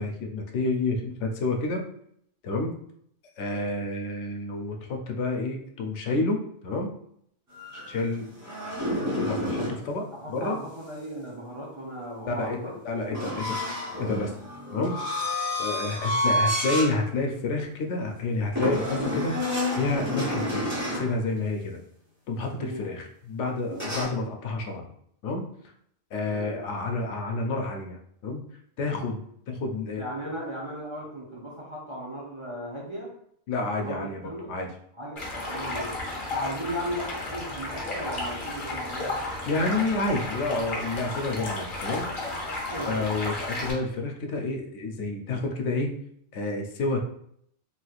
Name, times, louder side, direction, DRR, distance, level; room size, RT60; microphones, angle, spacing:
voice 1, 0.0-1.8 2.4-2.7 3.4-6.9 7.9-8.3 9.2-10.6 12.3-12.6 12.8-13.6 14.0-14.3 14.7-14.9 15.6-20.7 20.9-21.8 22.3-24.9 25.2-25.5 26.1-28.4 28.8-30.1 33.5-34.7 39.4-42.1 42.9-46.0 46.3-47.0, left 3 dB, 80° left, 3 dB, 0.9 m, -29 dB
sound 1, 7.5-9.8 13.1-16.9 17.4-17.6 18.5-21.1 23.7-24.0, left 1 dB, 15° right, 1.2 m, -29 dB
voice 2, 10.2-12.7 22.6-22.9 26.2-26.6 30.0-33.1 33.8-34.5 35.0-35.9 36.3-39.1 42.7-43.0, equal, 35° right, -5 dB, 0.6 m, -36 dB
Stream, 35.2-43.7, left 2 dB, 50° left, 0.9 m, -33 dB
3.1 x 3.0 x 2.3 m, 0.69 s
omnidirectional pair, 1.2 m